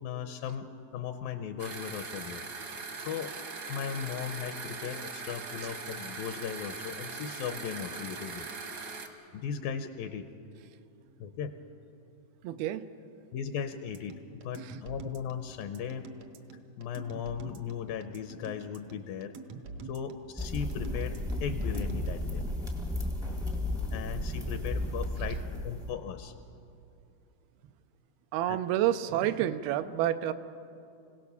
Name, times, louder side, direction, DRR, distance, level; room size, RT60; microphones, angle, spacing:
voice 1, 0.0-2.4 3.0-3.3 3.7-8.5 9.3-10.3 11.2-11.6 13.3-16.1 16.8-19.3 19.8-22.4 23.9-26.3 28.5-28.6, left 7 dB, 80° left, 8 dB, 2.4 m, -37 dB
sound 1, 1.6-9.1, right 4 dB, 55° right, 1.1 m, -40 dB
voice 2, 12.4-12.8 28.3-30.3, right 12 dB, 90° right, 10 dB, 2.6 m, -28 dB
sound 2, 13.9-22.1, right 3 dB, 70° right, 1.5 m, -45 dB
sound 3, 20.4-25.9, left 1 dB, 5° right, 0.3 m, -33 dB
26.0 x 17.0 x 6.9 m, 2.6 s
omnidirectional pair, 4.2 m